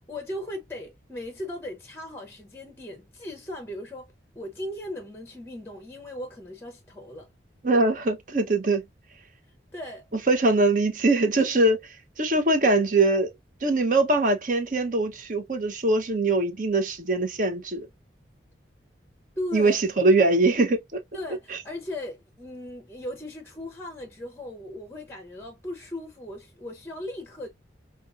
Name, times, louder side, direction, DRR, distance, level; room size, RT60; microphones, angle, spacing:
voice 1, 0.1-7.3 9.7-10.1 19.4-19.8 21.1-27.5, left 1 dB, 10° left, 0.7 m, -37 dB
voice 2, 7.6-8.8 10.3-11.8 12.2-13.3 13.6-17.9 19.5-21.0 21.5-21.6, right 2 dB, 45° right, 0.8 m, -22 dB
5.1 x 2.4 x 2.4 m
head